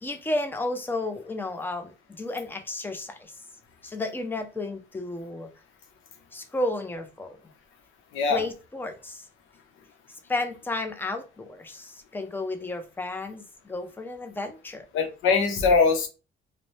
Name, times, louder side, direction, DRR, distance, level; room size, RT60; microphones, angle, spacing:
voice 1, 0.0-3.3 3.8-5.5 6.3-7.4 8.3-9.3 10.3-14.9, left 2 dB, 10° left, 5 dB, 0.5 m, -32 dB
voice 2, 8.1-8.4 14.9-16.1, left 4 dB, 90° left, 4 dB, 0.7 m, -22 dB
2.5 x 2.1 x 3.1 m, 0.30 s
cardioid pair, 90°, 20 cm